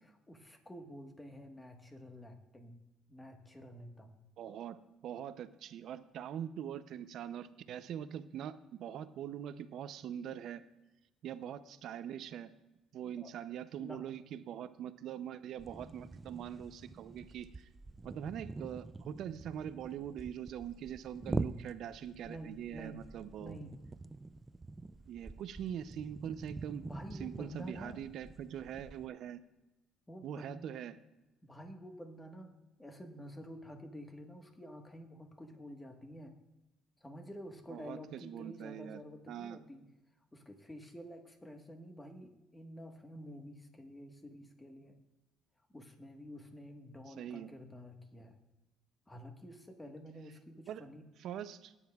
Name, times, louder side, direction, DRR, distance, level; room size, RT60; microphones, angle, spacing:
voice 1, 0.0-2.8 3.1-4.2 13.2-13.3 13.8-14.0 22.2-23.0 23.4-23.8 26.8-28.0 30.1-30.7 31.4-36.4 37.0-39.9 40.3-45.0 45.7-48.4 49.1-51.1, equal, 10° left, 4 dB, 1.4 m, -50 dB
voice 2, 4.4-10.6 11.2-12.5 12.9-17.7 18.0-23.6 25.1-26.9 27.2-29.4 30.2-31.0 37.7-39.0 39.3-39.6 47.1-47.5 50.7-50.8 51.2-51.7, right 9 dB, 65° right, 13 dB, 0.5 m, -43 dB
sound 1, 15.6-29.1, right 3 dB, 15° right, 0.3 m, -45 dB
17.5 x 9.8 x 2.4 m, 1.0 s
cardioid pair, 110°, 0 cm